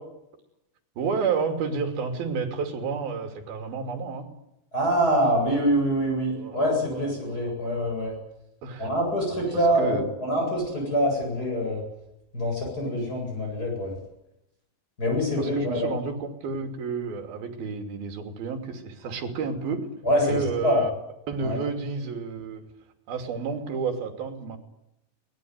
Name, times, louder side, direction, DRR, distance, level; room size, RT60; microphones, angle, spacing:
voice 1, 1.0-4.3 6.3-7.1 7.4-7.5 8.6-8.9 9.5-10.0 15.4-19.9 20.2-20.9 21.3-22.7 23.1-24.6, right 5 dB, 75° right, 5 dB, 4.7 m, -31 dB
voice 2, 4.7-8.1 8.8-11.8 12.3-13.9 15.0-15.9 20.0-20.2 20.6-20.8 21.4-21.6, equal, 25° left, 1 dB, 8.6 m, -25 dB
23.0 x 20.0 x 9.6 m, 0.86 s
omnidirectional pair, 4.3 m